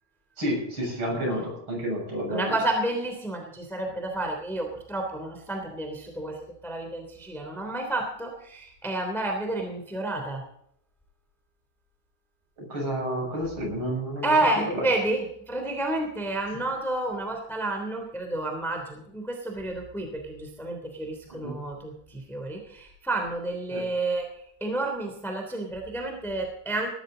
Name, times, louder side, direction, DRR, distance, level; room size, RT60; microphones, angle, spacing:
voice 1, 0.4-2.6 12.6-14.3 14.7-14.9 21.4-21.6 23.7-23.8, equal, 25° right, -1 dB, 7.9 m, -30 dB
voice 2, 2.3-10.4 14.2-24.2 24.6-26.9, right 2 dB, ahead, 2 dB, 1.6 m, -30 dB
19.5 x 13.5 x 3.9 m, 0.72 s
omnidirectional pair, 5.6 m